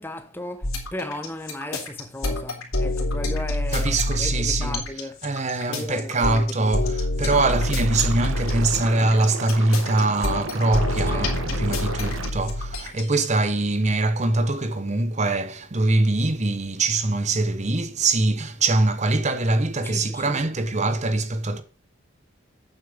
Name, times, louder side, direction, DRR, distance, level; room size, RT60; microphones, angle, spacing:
voice 1, 0.0-5.2 5.7-6.5 6.8-7.0 11.1-11.6 19.8-20.4, left 1 dB, 10° left, 1.1 m, -36 dB
sound 1, 0.6-13.4, left 1 dB, 85° left, 3.2 m, -26 dB
voice 2, 3.7-4.8 5.2-21.6, right 2 dB, 35° right, 0.9 m, -23 dB
Liquid, 7.3-12.3, right 3 dB, 75° right, 1.1 m, -34 dB
8.9 x 7.7 x 5.2 m
head